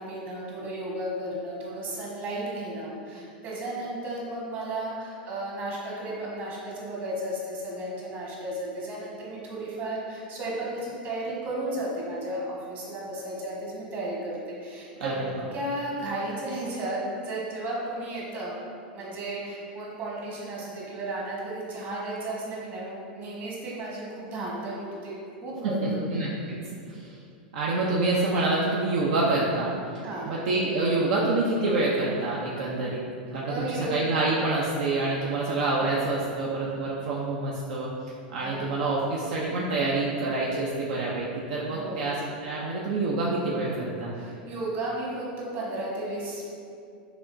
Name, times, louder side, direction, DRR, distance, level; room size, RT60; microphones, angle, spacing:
voice 1, 0.0-15.1 15.5-18.6 18.9-25.1 25.4-26.0 26.4-26.5 30.0-30.4 33.5-34.0 38.4-38.8 41.7-42.1 44.1-46.5, right 1 dB, 40° right, -5 dB, 1.3 m, -34 dB
voice 2, 25.8-26.6 26.9-27.1 27.5-29.7 30.2-33.0 33.3-37.9 38.3-42.2 42.4-44.1, right 2 dB, 70° right, -4 dB, 0.5 m, -27 dB
6.2 x 2.9 x 2.6 m, 2.5 s
hypercardioid pair, 110°, 5 cm